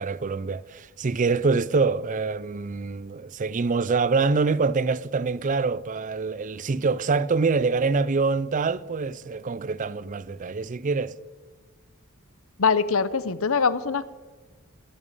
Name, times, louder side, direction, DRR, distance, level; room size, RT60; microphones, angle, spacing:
voice 1, 0.0-11.1, right 4 dB, 35° right, 0.4 m, -25 dB
voice 2, 12.6-14.1, left 5 dB, 65° left, 0.7 m, -23 dB
12.5 x 9.7 x 9.9 m
head